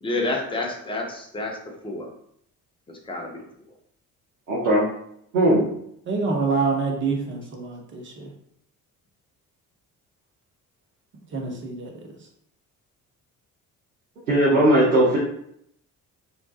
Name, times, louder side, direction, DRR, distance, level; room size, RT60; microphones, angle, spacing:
voice 1, 0.0-2.1 2.9-3.5, left 2 dB, 10° left, 0 dB, 0.5 m, -29 dB
voice 2, 4.5-4.8 5.3-5.6 11.4-11.5 14.3-15.2, right 1 dB, 80° right, -7 dB, 0.6 m, -18 dB
voice 3, 6.1-8.3 11.3-11.9, right 4 dB, 25° right, 2 dB, 0.6 m, -26 dB
2.6 x 2.1 x 2.3 m, 0.70 s
figure-of-eight pair, 45°, 44 cm